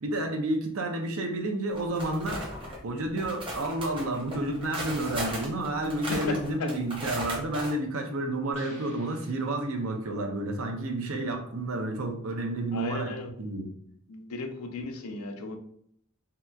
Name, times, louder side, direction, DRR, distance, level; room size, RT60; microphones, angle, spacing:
voice 1, 0.0-2.5 2.8-13.7, right 2 dB, 70° right, 4 dB, 0.6 m, -30 dB
sound 1, 1.7-2.8 3.2-7.7, equal, 25° right, 0.7 m, -37 dB
voice 2, 6.3-6.7 12.7-13.3 14.1-15.6, left 3 dB, 90° left, 5 dB, 0.5 m, -35 dB
sound 2, 8.5-10.1, left 1 dB, 30° left, 1.2 m, -53 dB
3.3 x 2.8 x 2.3 m, 0.67 s
head